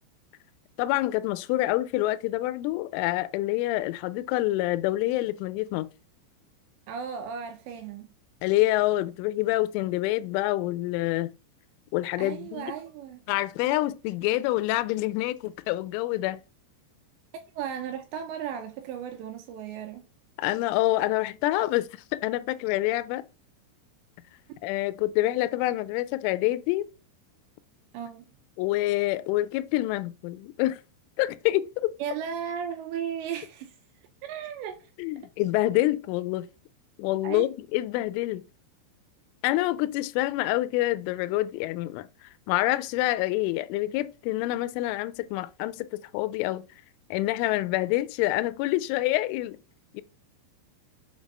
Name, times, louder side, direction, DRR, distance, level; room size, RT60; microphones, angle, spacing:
voice 1, 0.8-5.9 8.4-11.3 11.9-12.7 13.3-16.4 20.4-23.2 24.6-26.9 28.6-30.8 31.2-31.9 35.0-36.5 37.0-38.4 39.4-42.1 42.5-46.6 47.1-49.6 49.9-50.0, left 16 dB, 85° left, 3.0 m, -27 dB
voice 2, 6.9-8.1 12.2-13.2 13.6-13.8 17.5-20.1 27.9-28.3 32.0-33.7 34.2-34.9 37.2-37.5, right 8 dB, 80° right, 2.6 m, -35 dB
7.3 x 3.9 x 5.3 m
omnidirectional pair, 5.6 m